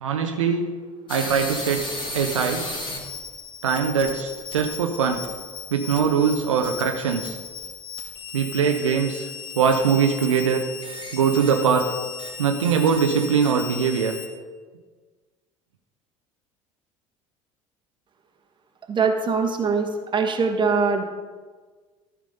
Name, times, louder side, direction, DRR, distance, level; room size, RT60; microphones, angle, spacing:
voice 1, 0.0-0.6 1.1-1.8 2.1-2.6 3.6-5.2 5.7-7.4 8.3-9.3 9.6-10.6 11.1-11.9 12.4-14.1, right 6 dB, 70° right, 4 dB, 0.9 m, -22 dB
sound 1, 1.1-14.3, left 4 dB, 30° left, 2.6 m, -35 dB
voice 2, 18.9-21.0, right 5 dB, 30° right, 4 dB, 1.5 m, -22 dB
13.5 x 6.1 x 5.4 m, 1.4 s
figure-of-eight pair, 65°, 16 cm